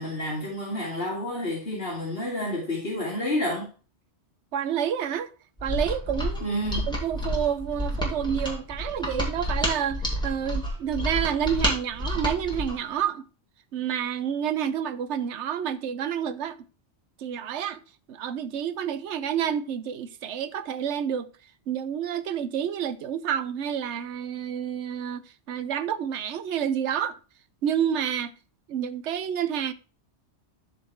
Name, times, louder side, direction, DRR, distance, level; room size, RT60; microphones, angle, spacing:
voice 1, 0.0-3.7 6.4-6.9, left 1 dB, 60° left, 2.4 m, -29 dB
voice 2, 4.5-5.3 5.6-6.6 6.9-13.2 13.7-16.6 17.2-17.8 18.1-21.3 21.7-25.2 25.5-27.2 27.6-28.3 28.7-29.7, right 9 dB, 80° right, 1.0 m, -29 dB
Mechanisms, 5.6-12.8, equal, 5° left, 2.8 m, -29 dB
12.5 x 4.4 x 4.6 m
omnidirectional pair, 1.2 m